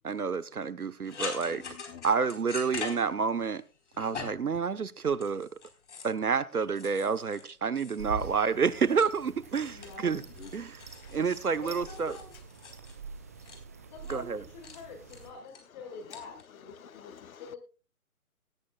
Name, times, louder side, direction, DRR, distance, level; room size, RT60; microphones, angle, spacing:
voice 1, 0.0-1.6 2.0-3.6 4.0-5.5 6.0-10.2 10.5-10.8 11.1-12.1 14.1-14.4, right 5 dB, 75° right, 1.2 m, -29 dB
sound 1, 1.1-3.6 3.9-4.5 5.2-6.2 6.7-8.4 8.6-9.5 9.8-13.6 14.0-14.2 14.6-14.8 15.1-15.6 16.1-16.4, left 5 dB, 50° left, 4.3 m, -43 dB
voice 2, 1.2-2.0 10.4-10.5 17.1-17.2, left 8 dB, 65° left, 0.7 m, -47 dB
sound 2, 8.0-15.3, right 4 dB, 10° right, 0.6 m, -45 dB
voice 3, 9.7-10.2 11.6-12.4 13.9-17.6, left 4 dB, 30° left, 6.3 m, -47 dB
17.5 x 13.5 x 2.3 m
figure-of-eight pair, 140°, 45 cm